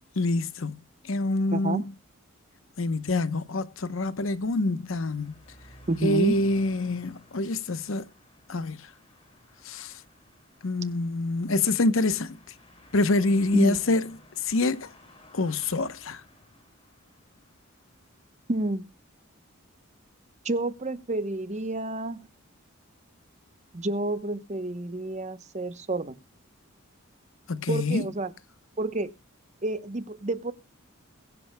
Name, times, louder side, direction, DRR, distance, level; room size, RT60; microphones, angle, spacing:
voice 1, 0.2-0.8 1.0-1.8 2.8-5.3 6.0-8.0 8.5-8.8 9.6-9.9 10.6-12.4 12.9-14.0 14.4-14.9 15.3-16.2 27.5-28.1, left 2 dB, 65° left, 0.9 m, -26 dB
voice 2, 1.5-1.8 5.9-6.4 13.5-13.8 18.5-18.9 20.4-22.3 23.7-26.2 27.7-28.3 28.8-29.1 29.6-30.5, right 2 dB, 30° right, 0.9 m, -29 dB
sound 1, 3.0-18.4, left 1 dB, 25° left, 6.3 m, -56 dB
22.0 x 10.5 x 2.2 m
head